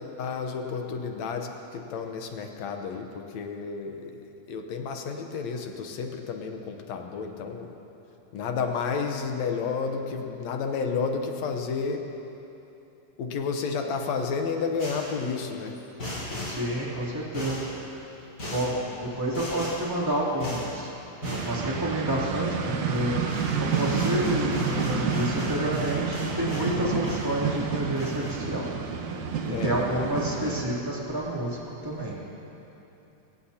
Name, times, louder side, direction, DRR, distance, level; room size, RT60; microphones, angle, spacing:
voice 1, 0.0-7.7 8.3-12.1 13.2-15.8 29.5-29.8, left 5 dB, 65° left, 4 dB, 2.0 m, -31 dB
sound 1, 14.8-15.2 16.0-16.7 17.3-17.7 18.4-18.8 19.3-19.9 20.4-20.7 21.2-21.6 23.0-23.1 23.3-26.8 27.0-27.7 28.0-28.4, left 2 dB, 30° left, 4.9 m, -36 dB
voice 2, 16.4-17.7 18.5-18.8 19.2-20.9 21.3-23.1 23.6-28.7 29.6-32.1, right 1 dB, 5° right, -6 dB, 2.6 m, -29 dB
sound 2, 21.2-30.6, right 5 dB, 70° right, 2.2 m, -30 dB
24.5 x 17.0 x 2.9 m, 3.0 s
omnidirectional pair, 3.7 m